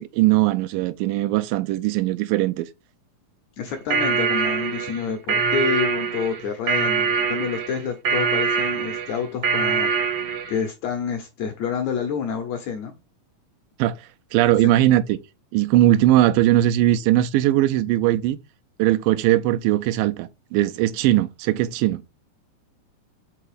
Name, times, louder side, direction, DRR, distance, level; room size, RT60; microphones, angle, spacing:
voice 1, 0.0-2.7 13.8-14.0 14.3-15.2 15.5-18.4 18.8-22.0, right 14 dB, 85° right, 2.2 m, -19 dB
voice 2, 3.6-10.1 10.5-13.0 14.6-14.7, left 6 dB, 70° left, 1.7 m, -28 dB
sound 1, 3.7-10.6, right 5 dB, 65° right, 1.4 m, -24 dB
5.4 x 3.9 x 4.9 m
omnidirectional pair, 4.0 m